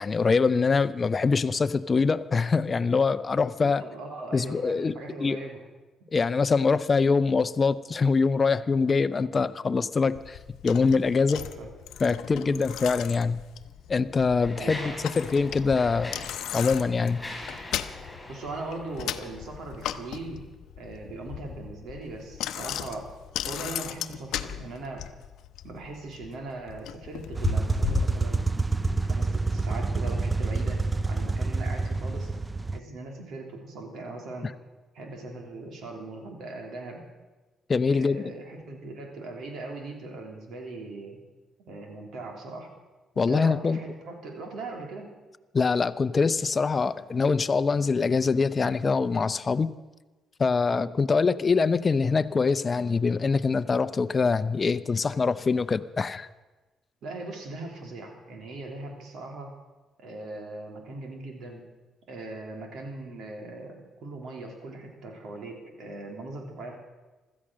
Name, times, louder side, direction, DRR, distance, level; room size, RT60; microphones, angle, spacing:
voice 1, 0.0-3.8 4.3-4.9 5.2-5.4 6.1-10.4 10.6-11.4 12.0-13.4 13.9-16.2 16.5-17.2 37.7-38.3 43.2-43.8 45.5-49.7 50.4-56.3, left 4 dB, 35° left, 12 dB, 0.6 m, -24 dB
voice 2, 3.6-5.6 11.3-11.7 12.4-12.6 14.6-15.0 18.3-20.5 20.8-23.1 23.4-25.1 25.6-28.5 29.0-32.3 32.7-34.5 34.9-37.0 37.9-41.2 41.7-42.7 43.3-45.1 50.7-50.9 57.0-59.5 60.0-61.6 62.1-66.8, right 2 dB, 75° right, 3 dB, 3.3 m, -39 dB
Bicycle, 10.1-29.0, left 11 dB, 85° left, 0.7 m, -37 dB
Mechanisms, 13.1-13.2 13.9-19.7, left 1 dB, 15° left, 5.5 m, -42 dB
sound 1, 27.3-32.8, right 3 dB, 20° right, 0.5 m, -27 dB
16.0 x 13.0 x 6.3 m, 1.2 s
cardioid pair, 90°, 0 cm